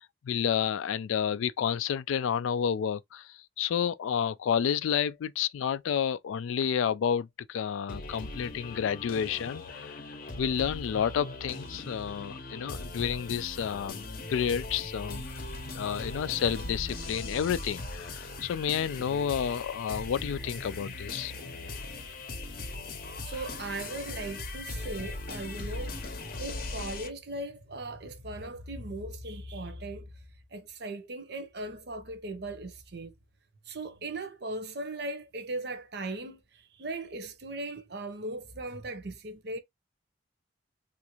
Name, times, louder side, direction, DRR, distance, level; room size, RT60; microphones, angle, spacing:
voice 1, 0.0-10.0 10.4-15.3 15.7-21.3, left 8 dB, 80° left, 0.3 m, -30 dB
sound 1, 7.9-27.1, left 2 dB, 45° left, 0.7 m, -39 dB
voice 2, 23.0-26.0 26.4-30.1 30.5-33.1 33.7-39.6, right 2 dB, 55° right, 0.7 m, -38 dB
3.5 x 2.5 x 2.9 m
head